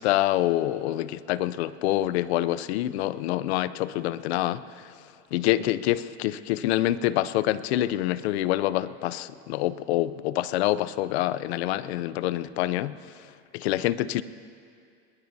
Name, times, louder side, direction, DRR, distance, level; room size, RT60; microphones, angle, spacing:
voice 1, 0.0-4.9 5.3-13.0 13.5-14.2, left 14 dB, 65° left, 16 dB, 0.6 m, -26 dB
22.0 x 19.5 x 2.7 m, 2.4 s
supercardioid pair, 160°, 35 cm